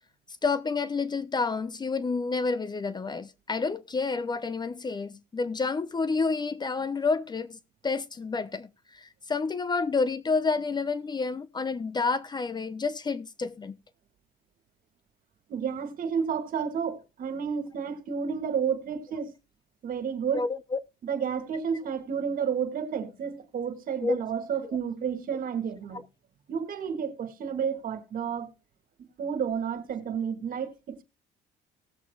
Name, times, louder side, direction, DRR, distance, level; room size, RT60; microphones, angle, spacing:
voice 1, 0.4-13.8 20.3-20.8 24.0-24.2 24.6-24.8 25.9-26.0, left 4 dB, 25° left, 0.7 m, -29 dB
voice 2, 15.5-19.3 19.8-20.5 21.0-26.0 26.5-28.5 29.0-31.0, right 7 dB, 55° right, 2.2 m, -31 dB
18.5 x 7.6 x 2.4 m
cardioid pair, 110°, 17 cm